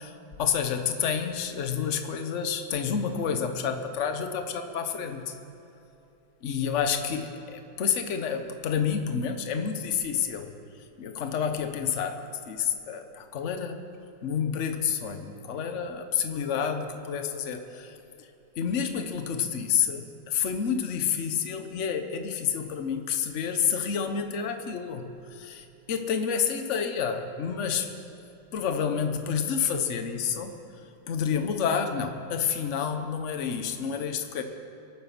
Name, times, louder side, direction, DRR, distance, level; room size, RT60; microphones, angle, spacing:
voice 1, 0.0-5.3 6.4-10.5 11.0-13.9 14.2-18.3 18.6-27.9 28.5-30.6 31.1-34.4, left 7 dB, 45° left, 7 dB, 1.1 m, -29 dB
23.5 x 9.1 x 6.0 m, 2.9 s
omnidirectional pair, 2.1 m